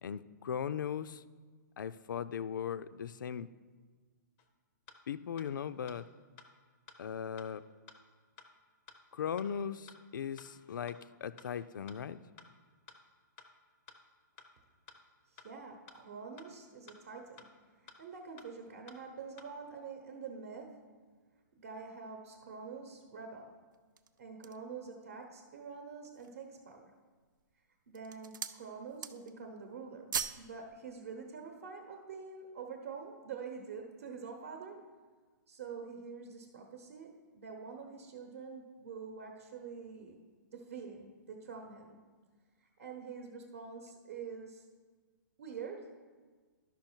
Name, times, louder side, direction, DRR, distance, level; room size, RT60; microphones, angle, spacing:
voice 1, 0.0-1.2 1.8-3.5 5.1-6.0 7.0-7.6 9.1-12.2, left 8 dB, 80° left, 0.4 m, -38 dB
sound 1, 4.4-4.5 4.9-5.0 5.4-5.5 5.9-6.0 6.4-6.5 6.9-7.0 7.4-7.5 7.9-8.0 8.4-8.5 8.9-9.0 9.4-9.5 9.9-10.0 10.4-10.5 10.9-11.0 11.4-11.5 11.9-12.0 12.4-12.5 12.9-13.0 13.4-13.5 13.9-14.0 14.4-14.5 14.9-15.0 15.4-15.5 15.9-16.0 16.4-16.5 16.9-17.0 17.4-17.5 17.9-18.0 18.4-18.5 18.9-19.0 19.4-19.5, left 5 dB, 15° left, 0.5 m, -54 dB
voice 2, 15.3-17.5 17.8-20.8 21.6-23.5 24.2-26.9 27.9-34.8 35.5-40.2 40.5-42.0 42.6-44.6 45.4-45.9, right 5 dB, 45° right, 0.9 m, -46 dB
sound 2, 23.7-24.7 25.3-25.4 25.9-26.5 27.2-27.5 27.9-28.6 28.9-29.4 29.7-30.5 30.8-30.9, right 7 dB, 80° right, 0.5 m, -40 dB
12.0 x 5.6 x 4.5 m
hypercardioid pair, 170°, 10 cm